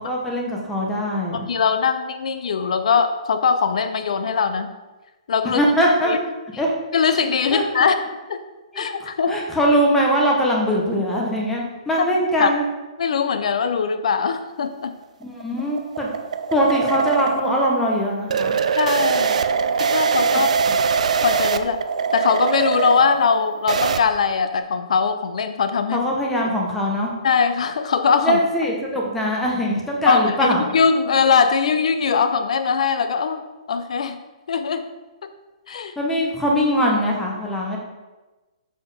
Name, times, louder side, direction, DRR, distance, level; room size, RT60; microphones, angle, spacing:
voice 1, 0.0-1.5 5.6-6.1 6.6-6.7 7.5-7.6 8.7-8.9 9.3-12.6 15.2-16.1 16.5-18.6 20.3-20.4 25.9-27.1 28.2-30.6 36.0-37.8, equal, 5° left, -2 dB, 1.0 m, -21 dB
voice 2, 1.3-4.7 5.3-5.6 6.0-6.2 6.9-8.0 8.3-8.4 8.8-9.4 12.4-12.5 13.0-14.9 18.8-19.4 19.8-20.5 21.2-21.8 22.1-26.0 27.2-28.4 30.1-33.4 33.7-34.2 34.5-34.9 35.2-35.3 35.7-35.9, left 6 dB, 70° left, 10 dB, 0.5 m, -21 dB
sound 1, 15.0-24.0, right 6 dB, 75° right, 0.4 m, -22 dB
6.5 x 4.4 x 4.9 m, 1.2 s
hypercardioid pair, 165°, 4 cm